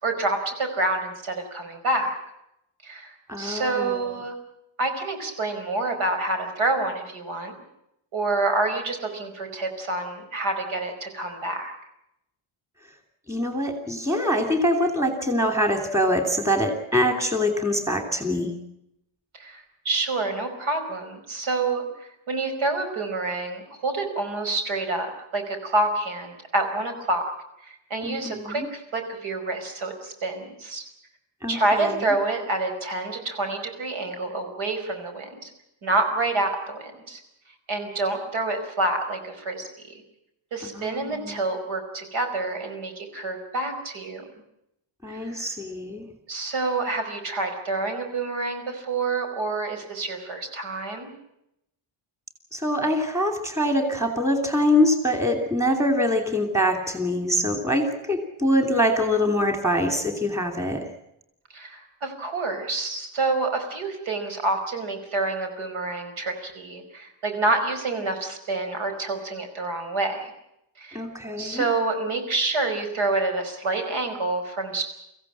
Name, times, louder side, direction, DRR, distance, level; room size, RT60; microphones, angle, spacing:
voice 1, 0.0-2.2 2.8-4.4 4.8-7.5 8.1-11.7 19.3-21.9 22.3-27.3 27.6-30.8 31.5-35.5 35.8-37.2 37.7-40.0 40.5-44.2 45.2-45.5 46.3-51.1 61.5-70.3 70.8-71.0 71.4-74.8, right 2 dB, 80° right, 6 dB, 5.1 m, -27 dB
voice 2, 3.3-4.1 13.3-18.5 28.0-28.7 31.4-32.0 40.7-41.4 45.0-46.0 52.5-60.9 70.9-71.6, left 1 dB, 5° right, 5 dB, 2.9 m, -24 dB
24.5 x 15.5 x 8.7 m, 0.81 s
cardioid pair, 160°, 48 cm